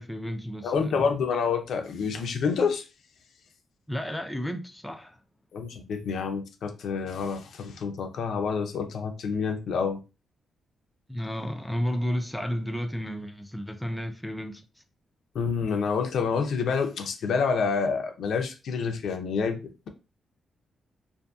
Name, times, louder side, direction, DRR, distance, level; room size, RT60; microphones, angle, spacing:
voice 1, 0.0-1.1 3.9-5.2 11.1-14.6, equal, 5° left, 0.4 m, -32 dB
voice 2, 0.6-2.8 5.5-10.0 15.3-19.9, left 5 dB, 75° left, 0.5 m, -28 dB
2.6 x 2.6 x 2.3 m
cardioid pair, 105°, 0 cm